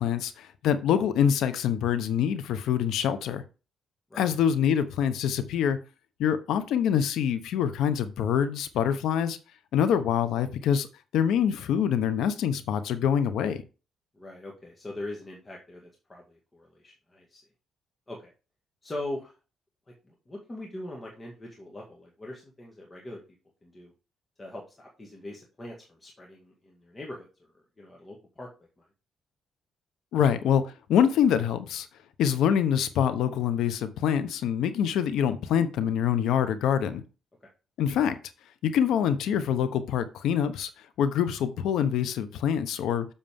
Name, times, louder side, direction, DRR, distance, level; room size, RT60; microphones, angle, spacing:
voice 1, 0.0-3.4 4.2-5.8 6.2-9.4 9.7-10.9 11.1-13.6 30.1-31.9 32.2-37.0 37.8-38.2 38.6-40.7 41.0-43.1, left 8 dB, 80° left, 1.0 m, -25 dB
voice 2, 14.1-17.4 18.1-18.3 18.8-19.3 20.1-23.2 23.6-23.9 24.4-27.3 27.5-28.5 28.8-28.9, left 1 dB, 25° left, 2.1 m, -41 dB
7.3 x 6.7 x 3.7 m
cardioid pair, 90°, 0 cm